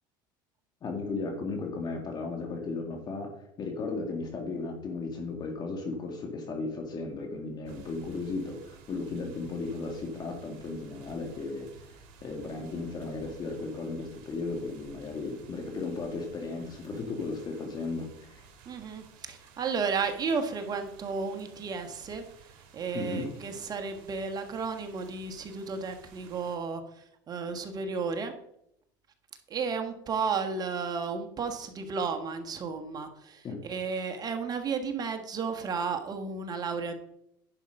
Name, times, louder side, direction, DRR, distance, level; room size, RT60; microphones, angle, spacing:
voice 1, 0.8-3.3 3.6-11.7 12.2-18.5 22.9-23.3 33.4-33.6, left 3 dB, 40° left, 3 dB, 2.2 m, -35 dB
sound 1, 7.6-26.6, right 5 dB, 70° right, 2.3 m, -54 dB
voice 2, 18.6-28.3 29.5-37.0, right 5 dB, 35° right, 6 dB, 1.4 m, -33 dB
10.5 x 5.5 x 5.3 m, 0.76 s
supercardioid pair, 100°, 11 cm